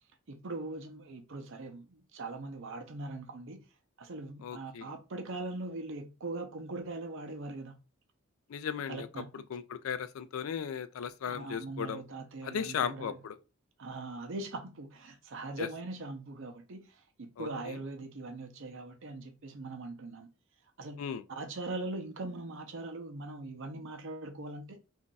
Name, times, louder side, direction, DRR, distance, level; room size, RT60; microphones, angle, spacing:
voice 1, 0.3-3.6 4.0-7.8 8.9-9.4 11.3-13.2 13.8-20.3 20.8-21.0 21.3-24.8, right 2 dB, 65° right, 0.6 m, -41 dB
voice 2, 4.4-4.9 8.5-9.1 9.3-12.0 12.4-13.4 15.6-15.7 17.4-17.8 21.0-21.2, left 7 dB, 90° left, 0.4 m, -36 dB
2.6 x 2.3 x 3.8 m
head